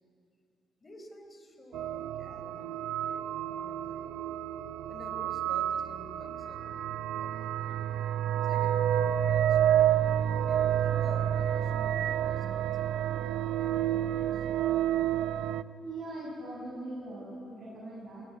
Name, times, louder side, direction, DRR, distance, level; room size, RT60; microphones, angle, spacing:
voice 1, 0.8-4.3 4.9-6.7 7.2-7.8 8.3-9.8 10.4-13.2 13.6-14.5, left 1 dB, 30° left, 5 dB, 4.3 m, -51 dB
sound 1, 1.7-15.6, right 10 dB, 85° right, 0.6 m, -29 dB
voice 2, 15.8-18.2, right 1 dB, 65° right, -4 dB, 6.9 m, -41 dB
21.0 x 19.5 x 9.7 m, 2.7 s
cardioid pair, 90°, 0 cm